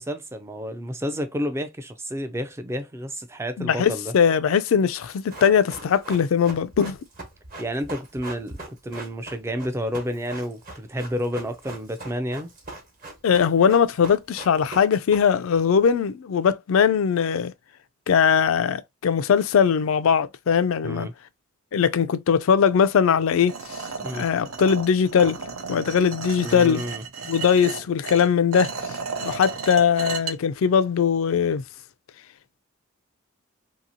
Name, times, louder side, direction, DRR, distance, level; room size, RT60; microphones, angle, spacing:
voice 1, 0.0-4.1 7.6-12.5 20.8-21.1 24.0-24.3 26.4-27.0, equal, 10° right, 0.3 m, -30 dB
voice 2, 3.6-7.0 13.2-17.5 18.1-21.1 21.7-23.6 24.1-25.4 25.7-26.8 27.2-28.7 29.2-31.6, left 7 dB, 70° left, 0.4 m, -20 dB
Run, 4.9-15.6 15.8-15.9, right 2 dB, 40° right, 1.1 m, -40 dB
sound 1, 23.5-30.3, right 5 dB, 80° right, 0.7 m, -34 dB
2.8 x 2.7 x 2.6 m
head